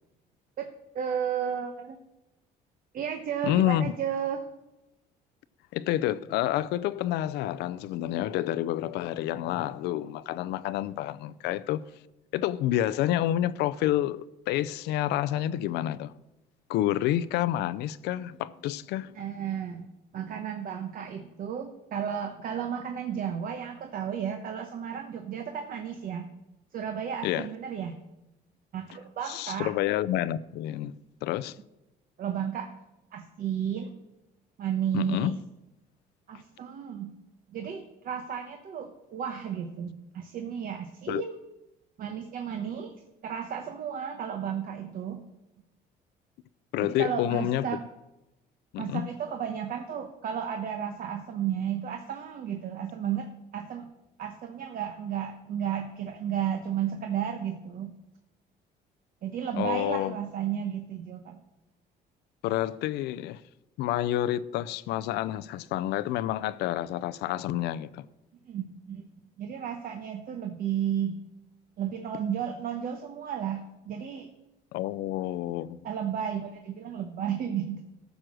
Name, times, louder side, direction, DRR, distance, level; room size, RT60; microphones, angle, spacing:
voice 1, 0.9-2.0 2.9-4.4 19.1-19.8 20.1-26.3 26.7-27.9 28.7-29.7 32.2-32.7 33.1-33.9 34.6-35.3 36.3-37.1 37.5-41.4 42.0-45.2 46.8-47.8 48.8-53.9 54.2-58.0 59.2-61.4 68.5-69.1 69.4-71.2 71.8-74.3 75.8-77.9, right 8 dB, 55° right, 1.1 m, -33 dB
voice 2, 3.4-3.9 5.7-11.9 12.3-16.1 16.7-19.1 27.2-27.5 29.3-31.6 34.9-35.3 41.1-41.2 46.7-47.7 48.7-49.1 59.6-60.2 62.4-63.4 63.8-68.1 74.7-75.8, left 13 dB, 85° left, 0.5 m, -29 dB
13.5 x 6.5 x 6.2 m
cardioid pair, 110°, 17 cm